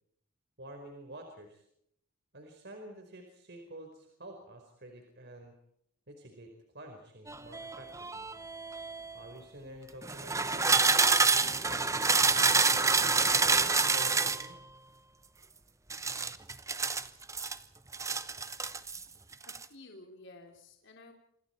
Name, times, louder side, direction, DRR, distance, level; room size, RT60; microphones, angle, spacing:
voice 1, 0.6-1.6 2.3-5.5 6.1-8.3 9.1-10.9 11.3-12.8 13.2-14.6, right 1 dB, 50° right, 3 dB, 4.7 m, -49 dB
sound 1, 7.3-9.2 10.0-14.5 15.9-17.6 17.9-19.0 19.3-19.6, right 4 dB, 15° right, 0.9 m, -27 dB
voice 2, 19.5-21.1, left 2 dB, 60° left, 2 dB, 3.6 m, -53 dB
28.0 x 26.5 x 4.6 m, 0.73 s
head